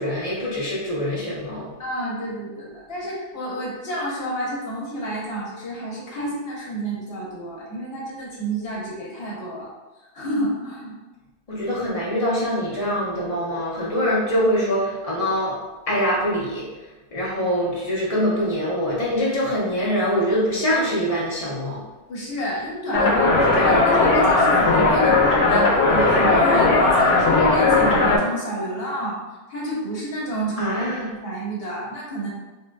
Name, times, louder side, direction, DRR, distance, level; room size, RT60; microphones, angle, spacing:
voice 1, 0.0-1.7 11.5-15.6 15.9-16.7 17.1-21.8 30.6-31.1, equal, 35° left, -6 dB, 0.8 m, -24 dB
voice 2, 1.8-9.7 10.1-11.0 22.1-29.2 29.5-32.3, right 1 dB, 60° left, -5 dB, 1.0 m, -29 dB
sound 1, 22.9-28.2, left 3 dB, 90° left, 0.9 m, -17 dB
3.4 x 2.4 x 2.2 m, 1.1 s
omnidirectional pair, 1.2 m